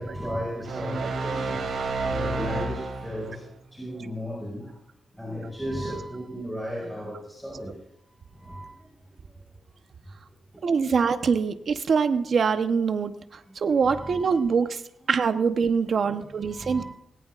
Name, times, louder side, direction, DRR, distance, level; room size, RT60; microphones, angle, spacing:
voice 1, 0.0-1.6 2.1-3.4 3.7-4.7 5.2-7.7 8.3-8.7 13.7-14.3 16.0-16.8, equal, ahead, -5 dB, 5.3 m, -35 dB
sound 1, 0.6-3.4, right 3 dB, 85° right, 2.7 m, -30 dB
voice 2, 10.6-14.8 15.1-16.8, right 5 dB, 60° right, 9 dB, 0.9 m, -24 dB
19.0 x 17.5 x 2.5 m, 0.75 s
wide cardioid pair, 110°, 0 cm